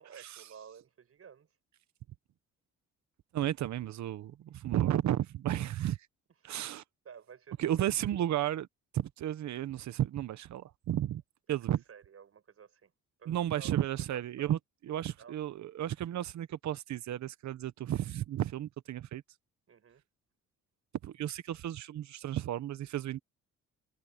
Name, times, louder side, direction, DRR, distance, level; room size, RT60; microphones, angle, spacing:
voice 1, 0.0-1.5 7.0-8.0 11.5-11.6 11.9-12.9 13.2-13.8 14.1-14.5 15.2-15.3 19.7-20.0, right 7 dB, 50° right, 6.2 m, -53 dB
voice 2, 3.3-6.0 6.4-6.8 7.6-8.7 8.9-11.2 11.5-11.8 13.3-19.2 21.0-23.2, right 12 dB, 65° right, 1.1 m, -33 dB
cardioid pair, 90°, 30 cm